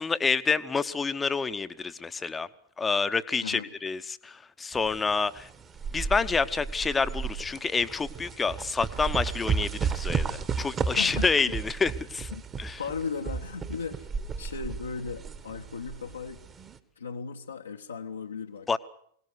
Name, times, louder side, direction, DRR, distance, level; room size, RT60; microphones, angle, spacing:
voice 1, 0.0-2.5 2.8-5.5 5.9-12.3 12.6-12.8 18.7-18.8, left 4 dB, 15° left, 13 dB, 0.9 m, -28 dB
sound 1, 4.7-16.8, right 6 dB, 25° right, 1.4 m, -33 dB
voice 2, 11.0-11.3 12.3-12.4 12.8-14.1 14.4-16.4 17.0-18.7, left 5 dB, 75° left, 2 dB, 1.1 m, -36 dB
22.5 x 18.5 x 8.1 m, 0.66 s
figure-of-eight pair, 90°, 0 cm